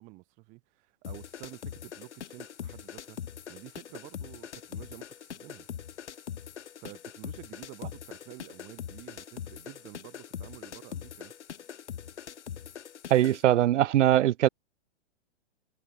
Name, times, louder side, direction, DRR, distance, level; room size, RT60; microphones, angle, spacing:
voice 1, 0.0-3.2 3.5-5.7 6.8-11.3, right 26 dB, 20° right, 2.3 m, -49 dB
sound 1, 1.0-13.4, left 9 dB, 75° left, 7.8 m, -42 dB
voice 2, 13.1-14.5, right 13 dB, 90° right, 0.6 m, -21 dB
hypercardioid pair, 175°, 35 cm